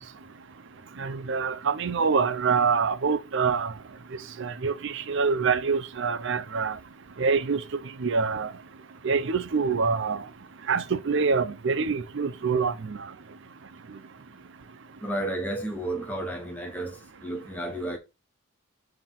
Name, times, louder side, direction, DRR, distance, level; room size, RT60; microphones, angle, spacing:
voice 1, 1.0-3.7 4.4-6.8 7.2-7.6 8.0-8.5 9.0-10.2 10.7-13.0, right 5 dB, 60° right, 0.6 m, -25 dB
voice 2, 15.0-18.0, right 1 dB, 10° left, 0.7 m, -32 dB
7.2 x 2.9 x 5.6 m
head